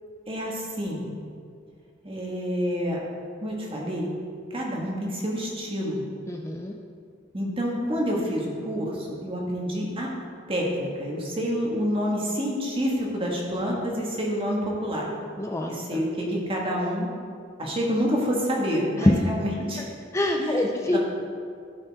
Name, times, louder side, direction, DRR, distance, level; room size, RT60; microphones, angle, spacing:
voice 1, 0.3-1.0 2.0-3.0 3.4-4.1 4.5-6.0 7.3-10.1 10.5-15.1 15.7-17.1 17.6-19.8 20.4-20.6 20.9-21.0, equal, 30° right, -3 dB, 1.7 m, -28 dB
voice 2, 6.3-6.8 15.4-16.0 19.0-19.2 20.1-21.0, left 1 dB, 15° left, 1 dB, 0.5 m, -24 dB
14.5 x 5.5 x 3.6 m, 2.3 s
head